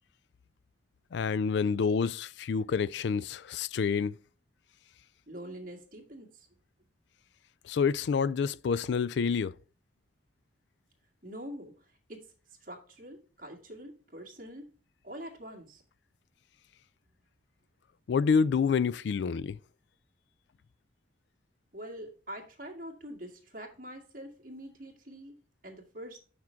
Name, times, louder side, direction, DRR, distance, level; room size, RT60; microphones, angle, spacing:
voice 1, 1.1-4.1 7.6-9.5 18.1-19.6, left 5 dB, 70° left, 0.3 m, -28 dB
voice 2, 5.3-6.5 11.2-12.3 12.6-14.8 15.0-15.8 21.7-26.2, equal, 45° right, 1.9 m, -45 dB
6.3 x 6.0 x 4.4 m
head